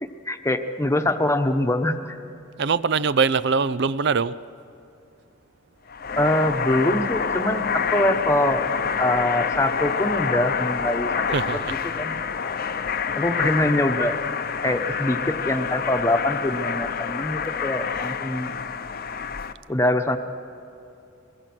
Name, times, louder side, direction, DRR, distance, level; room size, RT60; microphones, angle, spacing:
voice 1, 0.2-2.2 6.2-8.6 9.0-11.2 11.8-12.2 13.1-14.2 14.6-18.5 19.7-20.2, left 1 dB, 15° left, 1.1 m, -23 dB
voice 2, 2.6-4.4 11.3-11.7, right 5 dB, 60° right, 0.6 m, -22 dB
sound 1, 5.9-19.5, left 6 dB, 50° left, 0.7 m, -27 dB
24.5 x 21.5 x 6.2 m
head